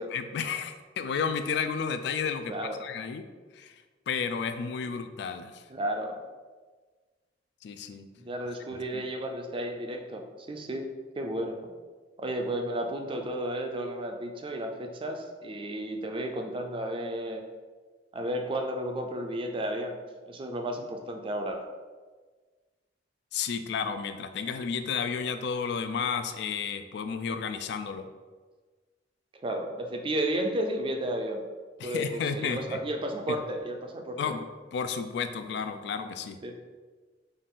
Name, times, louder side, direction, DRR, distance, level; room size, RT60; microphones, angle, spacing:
voice 1, 0.1-2.5 2.8-3.2 3.5-3.7 4.1-5.6 7.6-8.1 8.9-9.0 23.3-28.1 31.8-32.8 34.2-34.4 34.7-36.4, left 6 dB, 65° left, 8 dB, 0.3 m, -32 dB
voice 2, 2.5-2.8 5.7-6.2 8.2-10.9 11.2-11.7 12.2-17.4 18.1-20.0 20.3-21.6 29.4-31.4 31.8-34.3 36.4-36.6, right 1 dB, 30° right, 3 dB, 0.4 m, -33 dB
4.0 x 2.4 x 3.6 m, 1.4 s
head